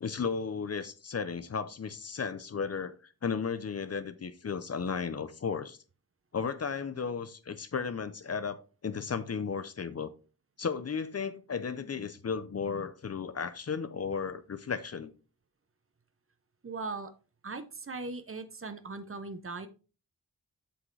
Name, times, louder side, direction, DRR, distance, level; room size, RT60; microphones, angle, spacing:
voice 1, 0.0-2.9 3.2-5.8 6.3-10.1 10.6-15.1, left 6 dB, 45° left, 0.6 m, -34 dB
voice 2, 16.6-17.1 17.4-19.7, right 3 dB, 35° right, 0.8 m, -39 dB
7.7 x 6.2 x 3.3 m
wide cardioid pair, 105°, 36 cm